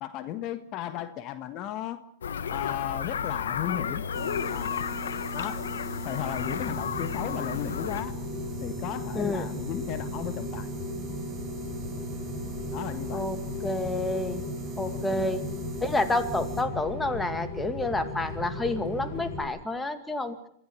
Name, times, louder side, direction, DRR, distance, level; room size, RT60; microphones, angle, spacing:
voice 1, 0.0-2.0 2.5-4.1 4.5-4.7 5.3-5.7 6.0-8.1 8.6-10.7 12.7-13.3 14.9-15.4, left 11 dB, 40° left, 11 dB, 1.5 m, -35 dB
sound 1, 2.2-8.0, left 7 dB, 90° left, 1.3 m, -32 dB
sound 2, 4.1-16.6, right 4 dB, 20° right, 6.4 m, -41 dB
Rain, 6.3-19.4, left 2 dB, 25° left, 7.3 m, -36 dB
voice 2, 9.2-9.5 13.1-13.4 13.6-14.4 14.8-15.4 15.8-20.4, left 2 dB, 10° left, 9 dB, 2.2 m, -29 dB
25.0 x 15.0 x 8.6 m, 0.69 s
hypercardioid pair, 125°, 0 cm